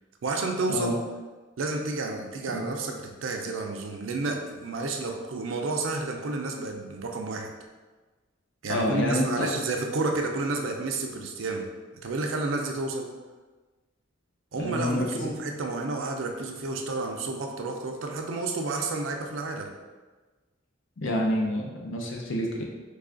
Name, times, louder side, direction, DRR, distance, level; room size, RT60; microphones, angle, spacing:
voice 1, 0.2-1.0 1.6-7.5 8.6-11.7 12.0-13.1 14.5-19.7, right 3 dB, 75° right, 3 dB, 0.4 m, -30 dB
voice 2, 8.7-9.5 14.5-15.3 21.0-22.6, left 1 dB, 70° left, 0 dB, 0.6 m, -28 dB
3.2 x 2.3 x 3.7 m, 1.3 s
head